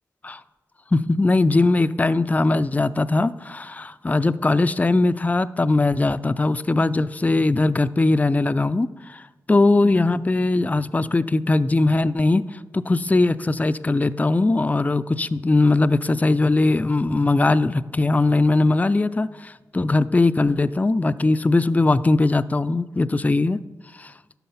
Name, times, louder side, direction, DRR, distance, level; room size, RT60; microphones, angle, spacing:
voice 1, 0.9-9.2 9.5-23.6 24.0-24.1, left 2 dB, 20° left, 14 dB, 0.4 m, -20 dB
11.5 x 4.2 x 5.6 m, 1.2 s
cardioid pair, 40°, 7 cm